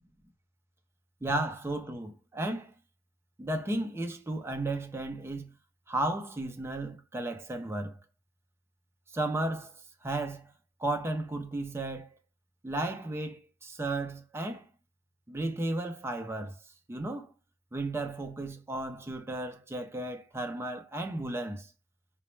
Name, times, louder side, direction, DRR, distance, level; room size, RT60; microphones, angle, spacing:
voice 1, 1.2-2.7 3.4-5.5 5.9-8.0 9.1-9.8 10.0-10.5 10.8-12.1 12.6-14.7 15.3-16.6 16.9-17.3 17.7-21.7, right 2 dB, 10° right, 0.4 m, -34 dB
4.0 x 2.2 x 3.0 m
head